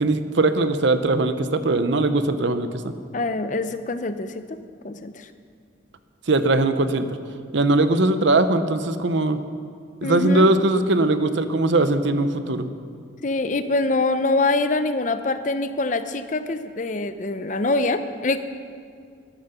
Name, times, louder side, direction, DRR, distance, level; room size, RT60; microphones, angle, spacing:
voice 1, 0.0-2.9 6.3-7.1 7.5-9.4 10.0-12.7, right 2 dB, 70° right, 10 dB, 0.8 m, -20 dB
voice 2, 3.1-4.6 4.8-5.3 10.0-10.5 13.2-18.4, left 2 dB, 40° left, 10 dB, 0.6 m, -24 dB
12.5 x 11.5 x 6.7 m, 2.2 s
head